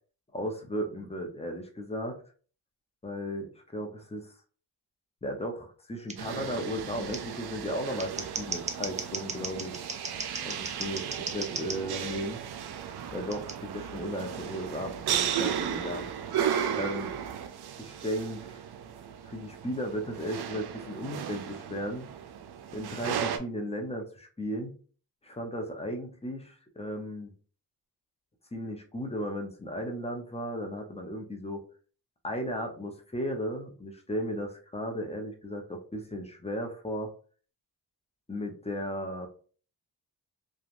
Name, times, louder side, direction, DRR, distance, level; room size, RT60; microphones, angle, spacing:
voice 1, 0.3-2.2 3.0-4.3 5.2-9.8 10.4-12.4 13.1-16.1 16.7-17.1 17.8-18.6 19.2-22.1 22.7-24.7 25.2-27.3 28.5-31.6 32.2-37.1 38.3-39.3, equal, 15° left, 3 dB, 0.7 m, -35 dB
Scissors, 6.1-6.2 7.1-7.2 7.8-11.8 13.3-13.5, right 3 dB, 15° right, 0.5 m, -36 dB
sound 1, 6.2-23.4, right 8 dB, 70° right, 0.5 m, -35 dB
3.0 x 2.3 x 2.5 m, 0.41 s
cardioid pair, 60°, 41 cm